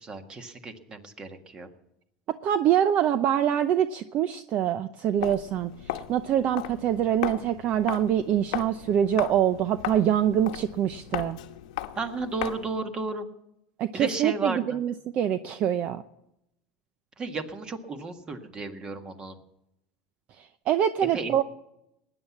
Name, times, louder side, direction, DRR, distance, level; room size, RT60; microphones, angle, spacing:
voice 1, 0.0-1.7 11.9-13.2 13.9-14.8 17.2-19.4 21.1-21.4, right 3 dB, 25° right, 7 dB, 1.6 m, -34 dB
voice 2, 2.4-11.4 13.8-16.0 20.4-21.4, right 10 dB, 45° right, 12 dB, 0.7 m, -25 dB
Walk footsteps, 5.1-12.8, left 13 dB, 90° left, 1.1 m, -37 dB
19.5 x 9.9 x 7.3 m, 0.84 s
supercardioid pair, 140°, 4 cm